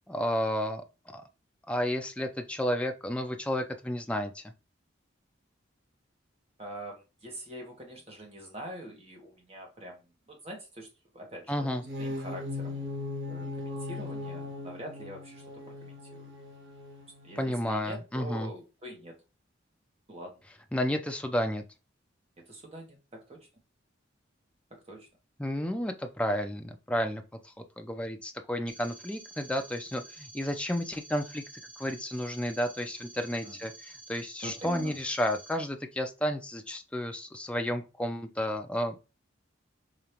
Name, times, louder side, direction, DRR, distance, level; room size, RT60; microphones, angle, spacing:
voice 1, 0.1-0.8 1.1-1.2 1.7-4.4 11.5-11.8 17.4-18.5 20.7-21.6 25.4-31.4 31.8-39.0, equal, 5° left, 5 dB, 0.5 m, -32 dB
voice 2, 6.6-10.0 10.3-10.9 11.1-12.9 13.3-16.3 17.2-19.2 20.1-20.4 22.4-23.5 24.7-25.1 33.4-33.6 34.4-35.0, right 1 dB, 30° right, 1 dB, 1.3 m, -44 dB
sound 1, 11.7-17.7, left 2 dB, 65° right, 1.1 m, -39 dB
sound 2, 28.7-35.5, right 2 dB, 50° right, 2.1 m, -49 dB
5.1 x 2.9 x 2.9 m, 0.28 s
head